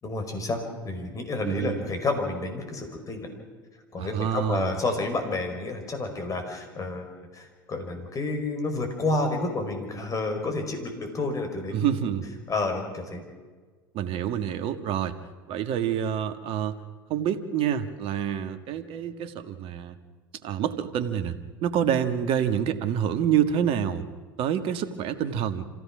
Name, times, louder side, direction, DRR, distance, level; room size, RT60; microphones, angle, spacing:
voice 1, 0.0-3.3 3.9-7.1 7.3-11.8 12.0-12.2 12.5-13.2, left 2 dB, 30° left, 4 dB, 5.2 m, -30 dB
voice 2, 1.4-1.8 4.0-4.8 11.7-12.3 13.9-15.2 15.5-16.8 17.1-20.0 20.4-24.0 24.4-25.7, right 9 dB, 55° right, 9 dB, 1.6 m, -27 dB
26.5 x 16.0 x 6.2 m, 1.4 s
hypercardioid pair, 85°, 11 cm